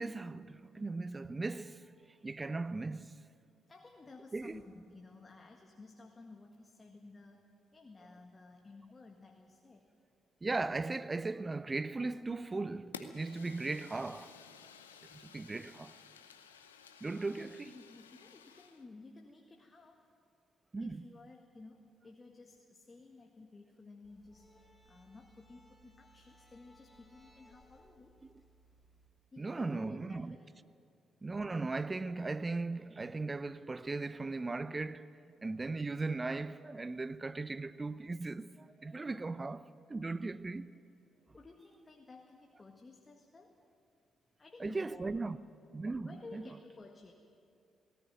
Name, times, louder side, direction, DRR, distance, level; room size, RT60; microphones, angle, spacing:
voice 1, 0.0-1.9 2.2-3.1 4.3-4.6 10.4-14.3 15.1-15.9 17.0-17.7 20.7-21.0 29.4-30.4 31.2-35.1 35.4-40.7 44.6-45.4 45.7-46.4, right 3 dB, 25° right, 0.7 m, -38 dB
voice 2, 3.7-9.9 17.3-20.1 20.8-28.1 29.3-30.5 41.3-43.6 44.4-45.3 46.0-47.1, left 3 dB, 30° left, 1.8 m, -55 dB
Fire, 12.9-18.8, left 7 dB, 85° left, 0.7 m, -54 dB
sound 1, 24.0-29.1, right 1 dB, 5° left, 4.6 m, -64 dB
18.5 x 17.5 x 9.3 m
figure-of-eight pair, 40°, 0 cm